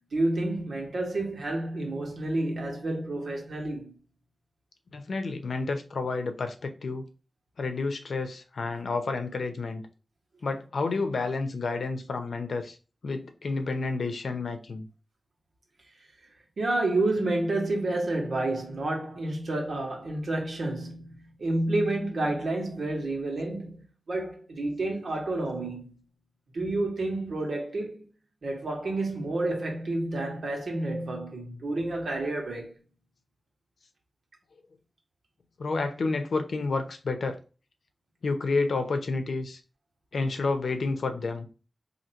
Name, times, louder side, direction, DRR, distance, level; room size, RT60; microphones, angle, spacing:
voice 1, 0.1-4.0 16.6-25.9 26.5-28.0 28.4-32.7, right 2 dB, 70° right, 1.5 m, -30 dB
voice 2, 4.9-7.1 7.6-9.9 10.4-12.8 13.0-14.9 35.6-37.4 38.2-39.6 40.1-41.5, left 3 dB, 75° left, 0.7 m, -30 dB
4.3 x 2.8 x 2.9 m
wide cardioid pair, 110°, 0 cm